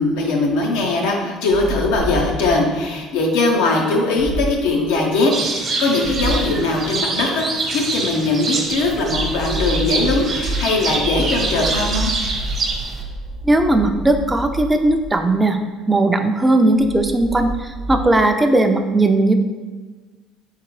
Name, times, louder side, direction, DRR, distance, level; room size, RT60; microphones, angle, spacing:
voice 1, 0.0-12.1, left 2 dB, 90° left, 0 dB, 0.7 m, -20 dB
sound 1, 1.5-2.7 4.2-4.8 6.0-6.7 8.6-15.4 16.7-18.1, right 1 dB, 75° right, 0.5 m, -28 dB
sound 2, 5.3-13.0, right 3 dB, 40° right, 0.8 m, -25 dB
voice 2, 13.4-15.6 15.9-19.3, right 2 dB, 15° right, 6 dB, 0.4 m, -17 dB
3.7 x 3.6 x 3.1 m, 1.3 s
supercardioid pair, 95°, 0 cm